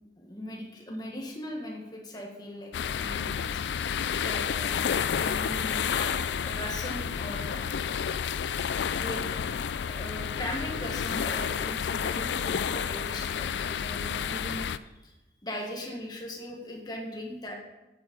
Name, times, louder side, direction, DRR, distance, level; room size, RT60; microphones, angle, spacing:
voice 1, 0.2-3.6 4.2-7.7 9.0-14.7 15.0-15.1 15.4-17.5, left 1 dB, 25° left, -1 dB, 1.6 m, -39 dB
sound 1, 2.7-14.8, left 7 dB, 85° left, 0.4 m, -30 dB
9.0 x 7.2 x 5.4 m, 1.0 s
head